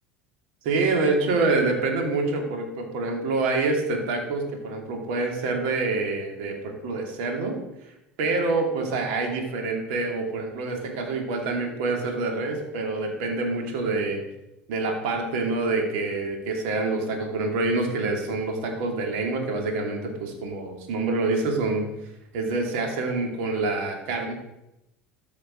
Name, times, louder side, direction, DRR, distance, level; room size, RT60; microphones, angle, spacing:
voice 1, 0.6-7.5 8.2-14.2 14.7-21.9 22.3-24.3, right 3 dB, 65° right, 2 dB, 2.6 m, -26 dB
13.5 x 5.7 x 5.1 m, 0.89 s
figure-of-eight pair, 70°, 6 cm